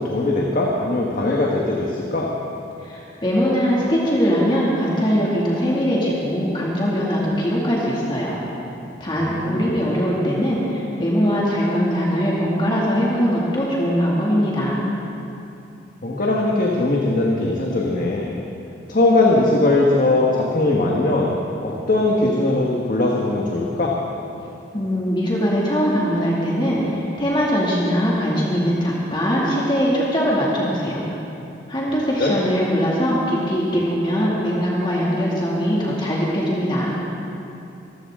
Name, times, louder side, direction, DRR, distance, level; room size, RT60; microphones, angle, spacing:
voice 1, 0.0-2.3 9.2-9.7 16.0-18.3 18.9-21.3 21.6-23.9 32.2-32.3, left 2 dB, 45° left, -3 dB, 1.5 m, -20 dB
voice 2, 2.8-8.4 9.0-14.8 24.7-31.0 31.7-36.9, equal, 25° left, -5 dB, 2.4 m, -21 dB
24.5 x 15.0 x 3.8 m, 2.8 s
head